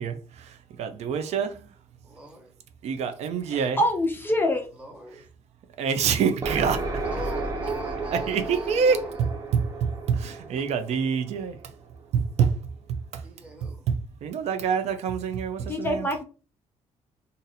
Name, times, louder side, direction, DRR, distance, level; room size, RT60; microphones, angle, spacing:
voice 1, 0.0-1.7 2.8-3.8 5.8-7.0 8.1-11.7 12.1-13.2 13.9-16.1, right 6 dB, 65° right, 0.5 m, -27 dB
voice 2, 2.0-2.5 4.7-5.2 6.9-9.2 10.6-10.7 13.2-13.9, right 2 dB, 10° right, 1.2 m, -41 dB
voice 3, 3.5-4.7 15.7-16.2, left 1 dB, 15° left, 0.6 m, -25 dB
sound 1, 6.4-12.0, right 3 dB, 25° right, 0.7 m, -33 dB
2.6 x 2.6 x 4.0 m
cardioid pair, 150°, 12 cm